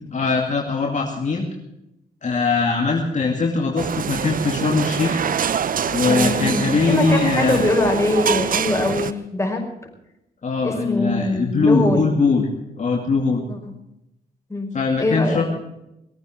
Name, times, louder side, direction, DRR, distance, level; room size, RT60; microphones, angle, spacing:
voice 1, 0.0-1.4 2.2-5.2 5.9-7.6 10.4-12.5 12.8-13.4 14.7-15.4, left 4 dB, 50° left, 0 dB, 2.4 m, -21 dB
sound 1, 3.8-9.1, right 8 dB, 60° right, 0.8 m, -25 dB
voice 2, 6.0-9.6 10.6-12.1 13.5-13.6 14.5-14.7 15.0-15.4, left 2 dB, 15° left, 1 dB, 5.3 m, -22 dB
20.5 x 9.1 x 7.6 m, 0.86 s
cardioid pair, 65°, 16 cm